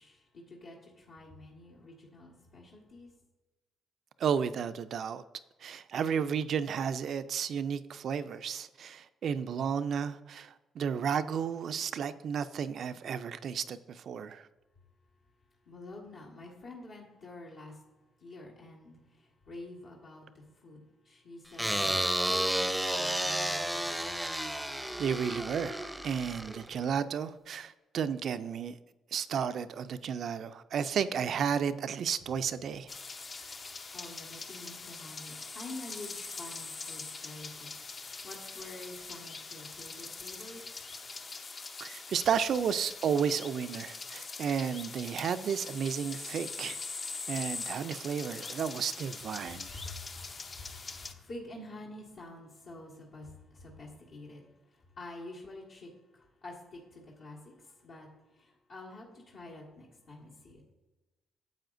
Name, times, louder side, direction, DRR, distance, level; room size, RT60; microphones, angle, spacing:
voice 1, 0.0-3.1 15.6-17.8 18.2-24.1 33.9-41.1 49.7-58.1 58.3-60.6, left 2 dB, 65° left, 1.6 m, -48 dB
voice 2, 4.2-5.2 5.6-14.5 25.0-28.8 29.1-32.9 41.8-46.8 47.3-49.7, right 7 dB, 60° right, 0.3 m, -32 dB
sound 1, 21.6-26.9, right 1 dB, 5° right, 0.6 m, -32 dB
sound 2, 32.9-51.1, left 4 dB, 35° left, 0.6 m, -43 dB
9.1 x 7.4 x 2.6 m
cardioid pair, 90°, 0 cm